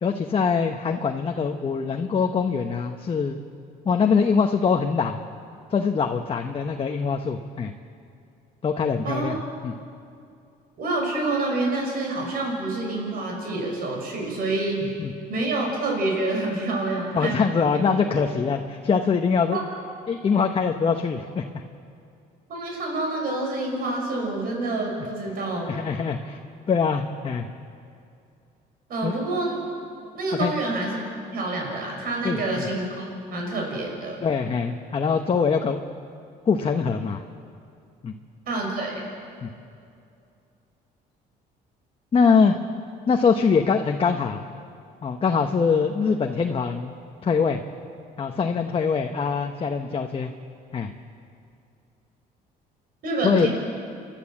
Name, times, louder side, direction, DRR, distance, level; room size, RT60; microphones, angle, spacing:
voice 1, 0.0-3.4 3.8-5.2 5.7-7.7 8.6-9.4 9.6-9.7 15.0-15.1 17.1-19.6 20.1-21.5 25.7-26.4 26.7-27.5 29.0-29.1 30.4-30.5 32.2-32.7 34.2-35.8 36.5-37.2 38.0-38.1 39.4-39.5 42.1-42.5 43.1-44.4 45.0-46.9 47.2-47.6 48.2-50.3 50.7-50.9 53.2-53.5, left 5 dB, 35° left, 4 dB, 1.0 m, -23 dB
voice 2, 10.8-14.9 15.3-17.4 19.5-19.6 22.5-25.7 28.9-29.6 30.1-31.0 31.3-34.2 38.5-39.1 53.0-53.5, right 2 dB, 60° right, 0 dB, 6.0 m, -27 dB
29.5 x 12.0 x 7.4 m, 2.5 s
cardioid pair, 110°, 17 cm